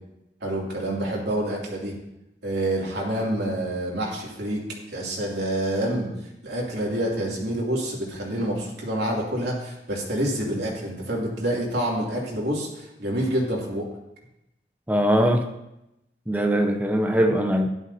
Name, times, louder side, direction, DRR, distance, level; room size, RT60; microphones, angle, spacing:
voice 1, 0.4-1.9 2.4-6.1 6.4-13.8, right 1 dB, 75° right, -3 dB, 2.7 m, -27 dB
voice 2, 14.9-15.5 16.3-17.7, equal, 10° right, 4 dB, 0.6 m, -21 dB
12.5 x 11.0 x 2.8 m, 0.89 s
head